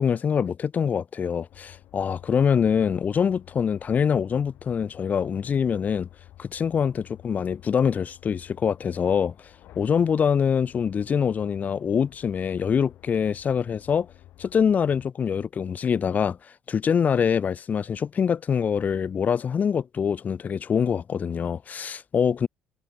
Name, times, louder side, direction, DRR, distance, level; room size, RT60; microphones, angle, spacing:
voice 1, 0.0-6.1 6.4-9.3 9.8-14.1 14.4-16.4 16.7-22.5, left 7 dB, 40° left, 0.7 m, -24 dB
sound 1, 1.5-15.1, left 14 dB, 65° left, 1.3 m, -51 dB
hypercardioid pair, 60°, 4 cm